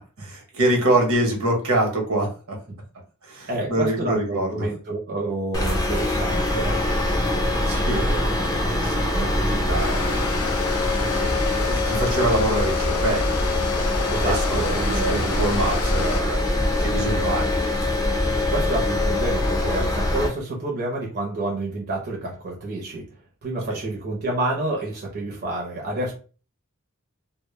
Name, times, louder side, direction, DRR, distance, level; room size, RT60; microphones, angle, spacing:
voice 1, 0.2-2.6 3.2-4.7 7.6-10.3 11.1-13.4 13.7-16.5 16.8-17.5 23.7-23.8, right 1 dB, 75° right, 1 dB, 0.8 m, -26 dB
voice 2, 3.5-6.8 9.1-9.4 14.1-15.2 18.5-23.1 23.4-26.1, right 2 dB, 50° right, -2 dB, 0.6 m, -28 dB
sound 1, 5.5-20.3, left 1 dB, 15° left, 0.5 m, -23 dB
sound 2, 9.8-16.2, left 6 dB, 85° left, 0.4 m, -31 dB
2.1 x 2.0 x 3.0 m, 0.36 s
head